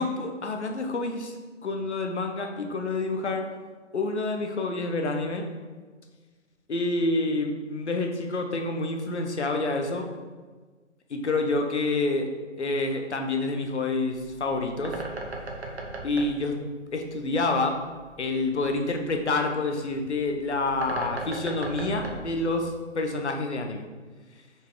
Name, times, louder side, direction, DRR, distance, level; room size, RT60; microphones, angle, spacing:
voice 1, 0.0-1.4 1.6-3.5 3.9-5.5 6.7-10.1 11.1-12.3 12.6-15.0 16.0-16.6 16.9-17.8 18.2-23.9, left 2 dB, 65° left, 4 dB, 1.0 m, -28 dB
Bird, 14.0-23.2, right 2 dB, 55° right, 1.1 m, -39 dB
5.7 x 4.6 x 3.8 m, 1.4 s
figure-of-eight pair, 160°, 37 cm